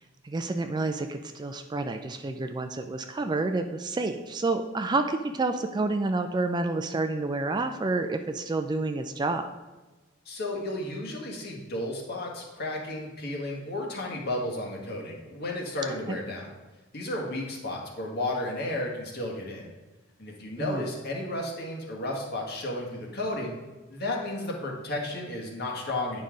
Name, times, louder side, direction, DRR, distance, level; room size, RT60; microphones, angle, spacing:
voice 1, 0.2-9.5 16.1-16.2 20.6-20.8, right 3 dB, 20° right, 7 dB, 0.3 m, -29 dB
voice 2, 10.2-16.5 16.9-19.7 20.2-23.6 23.9-26.2, left 1 dB, 50° left, 0 dB, 1.6 m, -33 dB
9.3 x 5.4 x 3.8 m, 1.2 s
head